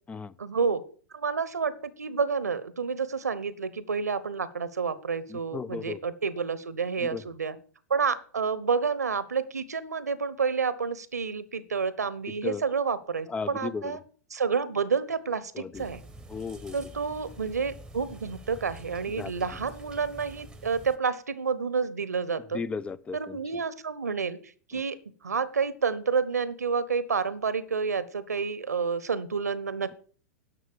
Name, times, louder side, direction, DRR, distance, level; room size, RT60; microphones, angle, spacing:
voice 1, 0.4-0.8 1.1-7.6 7.9-14.0 14.3-16.0 16.7-22.6 23.1-24.4 24.7-25.0 25.2-29.9, right 5 dB, 75° right, 17 dB, 0.9 m, -29 dB
voice 2, 5.3-6.0 7.0-7.2 12.4-12.6 13.3-14.0 15.5-15.9 16.3-16.8 19.2-19.3 22.5-23.6, left 5 dB, 15° left, 19 dB, 0.4 m, -35 dB
sound 1, 15.7-21.0, right 2 dB, 5° right, 0.9 m, -47 dB
11.0 x 6.5 x 6.7 m, 0.43 s
figure-of-eight pair, 95°, 9 cm